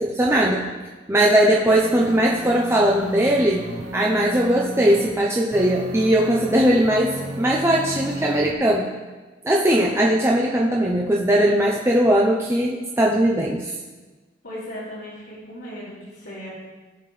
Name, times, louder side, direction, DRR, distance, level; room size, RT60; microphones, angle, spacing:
voice 1, 0.0-0.6 1.1-3.6 3.9-8.9 9.4-13.8, right 1 dB, 15° right, -3 dB, 0.7 m, -19 dB
sound 1, 1.7-5.1 5.5-8.5, equal, 45° right, 0.9 m, -34 dB
voice 2, 14.4-16.5, equal, 85° left, -11 dB, 3.5 m, -36 dB
16.5 x 6.6 x 3.3 m, 1.3 s
head